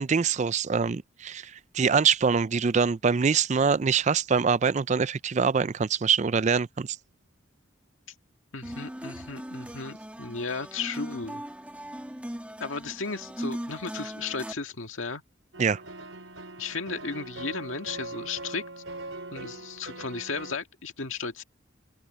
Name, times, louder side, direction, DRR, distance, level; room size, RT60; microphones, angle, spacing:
voice 1, 0.0-6.9 15.6-15.8, right 6 dB, 35° right, 0.4 m, -24 dB
voice 2, 8.5-11.4 12.6-15.2 16.6-18.8 19.3-21.4, left 4 dB, 85° left, 1.9 m, -35 dB
sound 1, 8.6-14.5, equal, 5° right, 1.9 m, -39 dB
sound 2, 15.5-20.6, right 2 dB, 80° right, 3.4 m, -41 dB
head